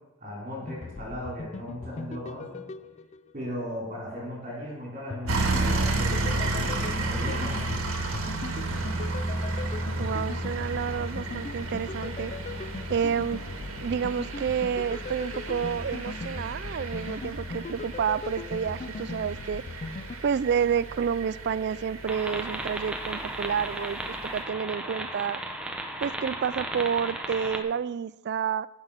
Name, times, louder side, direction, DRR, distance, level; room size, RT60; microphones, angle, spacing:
voice 1, 0.2-2.6 3.3-7.6, equal, 35° right, -5 dB, 4.5 m, -37 dB
sound 1, 0.6-3.6 5.1-20.2, left 4 dB, 30° left, 0.4 m, -39 dB
sound 2, 5.3-24.4, right 2 dB, 70° right, 1.9 m, -32 dB
voice 2, 10.0-12.3 12.9-13.4 13.8-19.6 20.2-25.4 26.0-28.7, right 7 dB, 50° right, 18 dB, 0.3 m, -29 dB
sound 3, 22.1-27.6, right 1 dB, 5° right, 0.8 m, -35 dB
15.5 x 6.1 x 5.9 m, 1.1 s
head